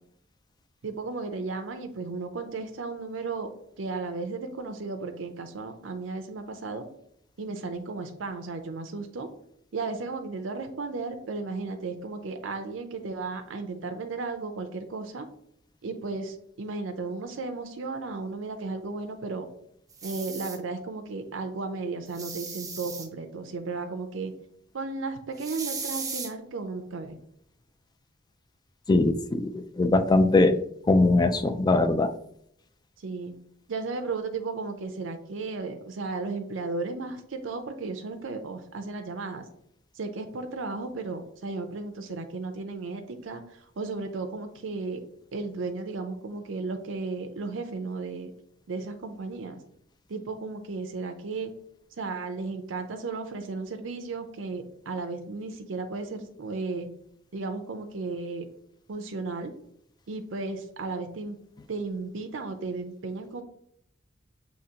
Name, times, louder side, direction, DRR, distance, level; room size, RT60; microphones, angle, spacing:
voice 1, 0.8-3.5 3.8-6.9 7.4-9.3 9.7-15.3 15.8-19.5 20.0-24.3 24.7-27.2 33.0-33.3 33.7-39.4 39.9-45.0 45.3-48.3 48.7-49.6 50.1-51.5 52.0-56.9 57.3-58.4 58.9-59.5 60.1-61.4 61.7-63.4, right 3 dB, 75° right, 6 dB, 0.5 m, -34 dB
sound 1, 19.9-20.6 22.1-23.1 25.4-26.3, right 5 dB, 20° right, 0.7 m, -36 dB
voice 2, 28.9-30.6 30.9-32.1, left 2 dB, 20° left, 10 dB, 0.3 m, -21 dB
6.6 x 2.8 x 2.8 m, 0.70 s
head